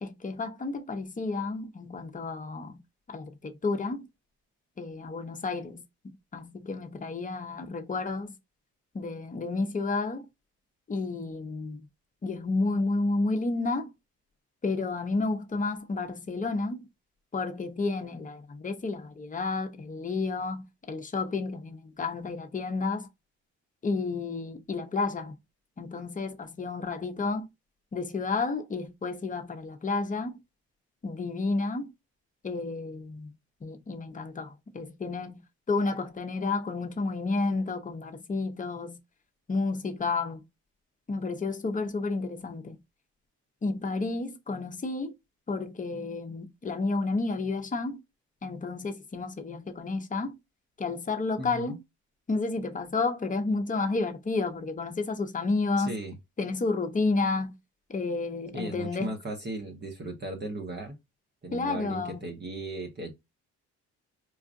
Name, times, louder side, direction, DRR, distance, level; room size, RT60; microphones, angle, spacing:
voice 1, 0.0-2.8 3.1-4.1 4.8-5.8 6.3-8.3 8.9-10.3 10.9-11.8 12.2-13.9 14.6-16.9 17.3-23.1 23.8-25.4 25.8-27.5 27.9-30.4 31.0-31.9 32.4-33.3 33.6-35.4 35.7-39.0 39.5-40.4 41.1-42.8 43.6-45.1 45.5-48.0 48.4-50.4 50.8-51.8 52.3-55.9 56.4-57.6 57.9-59.1 61.5-62.3, left 3 dB, 25° left, 0.8 m, -31 dB
voice 2, 51.4-51.8 55.8-56.1 58.5-61.0 61.4-63.1, right 2 dB, 35° right, 1.0 m, -37 dB
4.6 x 2.4 x 2.5 m
cardioid pair, 90°, 30 cm